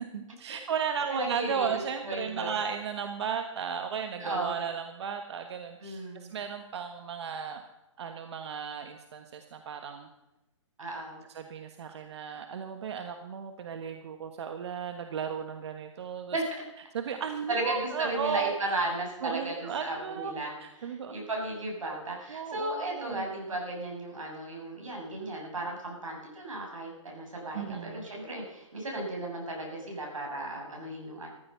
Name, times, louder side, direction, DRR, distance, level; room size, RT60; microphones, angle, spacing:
voice 1, 0.0-7.6 8.0-10.1 11.3-16.4 16.9-18.9 19.2-20.3 20.6-21.1 22.3-23.3 27.5-28.1, right 7 dB, 60° right, 6 dB, 1.3 m, -35 dB
voice 2, 1.1-2.5 4.2-4.5 5.8-6.3 10.8-11.2 16.3-16.6 17.5-20.5 20.8-31.3, right 1 dB, 90° right, 0 dB, 7.2 m, -35 dB
16.0 x 14.0 x 5.6 m, 0.98 s
hypercardioid pair, 145°, 16 cm